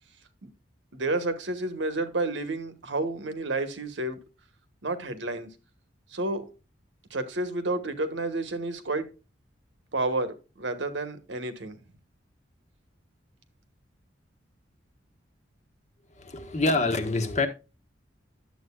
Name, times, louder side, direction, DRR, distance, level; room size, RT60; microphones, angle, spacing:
voice 1, 0.9-4.2 4.8-5.5 6.1-6.4 7.1-9.1 9.9-11.8, right 2 dB, 75° right, 1.2 m, -30 dB
voice 2, 16.2-17.5, left 2 dB, 40° left, 1.2 m, -26 dB
10.5 x 7.8 x 2.3 m
head